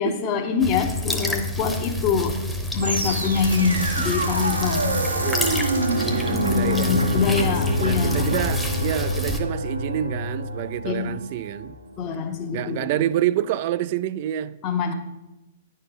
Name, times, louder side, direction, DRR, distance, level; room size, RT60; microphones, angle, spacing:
voice 1, 0.0-2.4 2.7-5.0 6.3-8.4 10.8-11.1 12.0-13.0 14.6-14.9, left 5 dB, 35° left, 0.9 m, -24 dB
sound 1, 0.6-9.4, left 1 dB, 5° left, 0.9 m, -28 dB
sound 2, 2.8-11.9, right 1 dB, 90° right, 1.0 m, -27 dB
voice 2, 5.2-5.7 6.0-7.2 7.9-11.8 12.5-14.6, right 12 dB, 50° right, 0.3 m, -28 dB
9.6 x 4.4 x 5.1 m
figure-of-eight pair, 110°, 0 cm